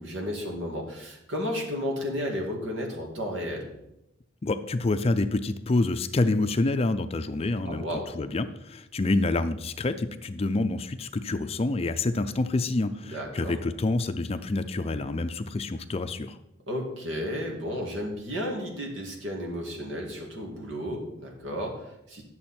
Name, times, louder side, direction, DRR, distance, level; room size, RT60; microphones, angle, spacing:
voice 1, 0.0-3.7 7.7-8.1 13.0-13.6 16.7-22.2, equal, 75° right, 0 dB, 2.3 m, -33 dB
voice 2, 4.4-16.4, left 2 dB, 30° left, 10 dB, 0.4 m, -27 dB
10.5 x 7.0 x 4.3 m, 0.85 s
head